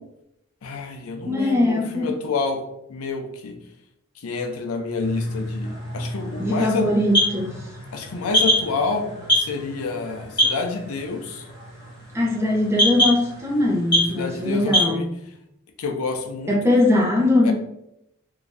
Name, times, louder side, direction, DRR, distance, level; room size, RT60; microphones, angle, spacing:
voice 1, 0.6-2.6 2.9-3.5 4.2-6.9 7.9-9.1 9.4-11.4 14.1-15.1 15.8-16.6 17.4-17.5, left 4 dB, 85° left, 5 dB, 0.5 m, -28 dB
voice 2, 1.3-2.1 6.4-7.7 12.1-15.1 16.5-17.5, left 1 dB, 10° right, -3 dB, 0.7 m, -21 dB
sound 1, 5.0-14.9, equal, 20° left, 1.4 m, -25 dB
3.9 x 2.6 x 2.5 m, 0.81 s
head